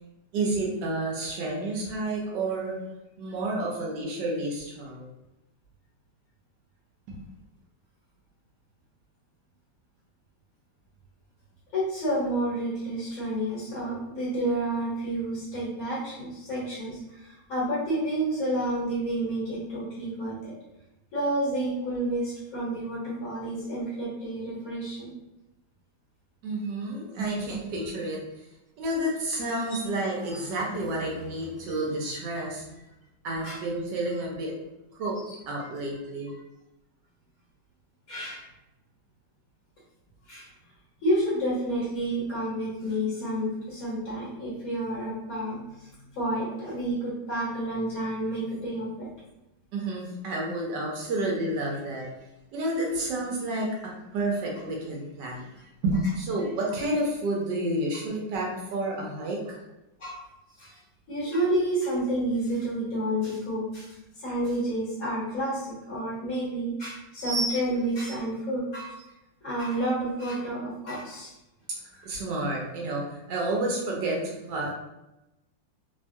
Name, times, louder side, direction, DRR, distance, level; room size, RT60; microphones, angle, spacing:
voice 1, 0.3-2.8 3.2-5.1 7.1-7.2 26.4-28.4 28.8-32.7 33.2-34.5 34.9-35.2 35.5-36.4 49.7-52.1 52.5-53.7 54.1-55.5 55.8-59.6 72.0-74.7, right 1 dB, 75° right, -2 dB, 1.2 m, -30 dB
voice 2, 11.7-20.5 21.1-25.1 31.6-31.7 33.4-33.6 35.3-35.4 38.1-38.4 40.3-40.5 41.0-45.9 46.1-49.1 60.0-60.2 60.6-60.8 61.1-69.1 69.4-71.3, right 1 dB, 55° left, -7 dB, 1.4 m, -30 dB
3.3 x 2.2 x 2.6 m, 0.93 s
omnidirectional pair, 2.0 m